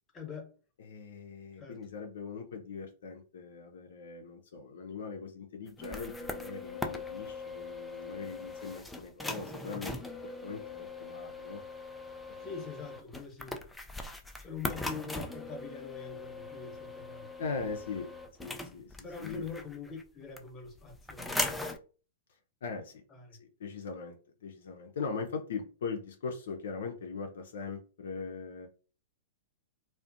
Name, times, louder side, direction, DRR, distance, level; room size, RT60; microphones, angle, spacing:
voice 1, 0.1-0.5 1.6-1.8 12.4-13.6 14.4-17.3 19.0-21.5 23.1-23.4, left 5 dB, 20° left, 0.9 m, -44 dB
voice 2, 0.8-11.6 12.3-12.5 17.4-18.1 18.4-19.4 22.6-23.0 23.4-24.2 24.4-28.7, left 5 dB, 65° left, 0.4 m, -40 dB
sound 1, 5.7-20.0 20.4-21.8, left 2 dB, 5° left, 0.3 m, -40 dB
2.4 x 2.0 x 2.6 m
figure-of-eight pair, 105°, 0 cm